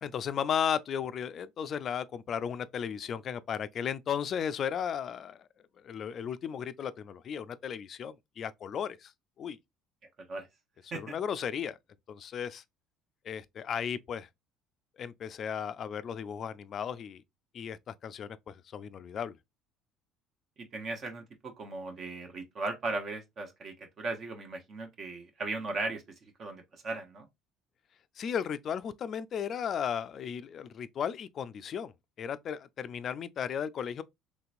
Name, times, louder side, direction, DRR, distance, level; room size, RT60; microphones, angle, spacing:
voice 1, 0.0-5.5 5.8-9.1 9.4-9.6 10.9-11.8 12.1-12.6 13.2-14.3 15.0-17.2 17.5-19.4 28.2-34.0, left 8 dB, 50° left, 0.3 m, -35 dB
voice 2, 20.6-27.3, right 3 dB, 50° right, 0.8 m, -37 dB
3.2 x 3.0 x 2.4 m
supercardioid pair, 90°, 0 cm